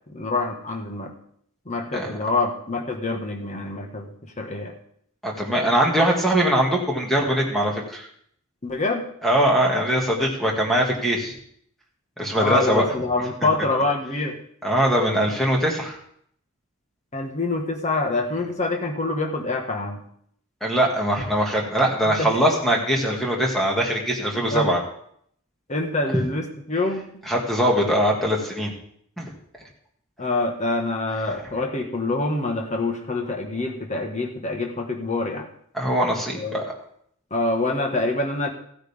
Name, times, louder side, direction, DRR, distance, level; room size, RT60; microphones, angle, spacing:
voice 1, 0.1-1.1 1.7-4.7 8.6-9.0 12.3-14.3 17.1-20.0 22.0-22.4 24.5-24.7 25.7-27.0 30.2-35.5 36.3-36.7 37.3-38.5, left 2 dB, 35° left, 1 dB, 1.7 m, -26 dB
voice 2, 5.2-8.1 9.2-11.3 12.2-12.9 14.6-16.0 20.6-24.8 27.3-28.7 29.2-29.3 35.7-36.6, equal, ahead, -1 dB, 2.3 m, -21 dB
15.5 x 9.3 x 3.7 m, 0.67 s
head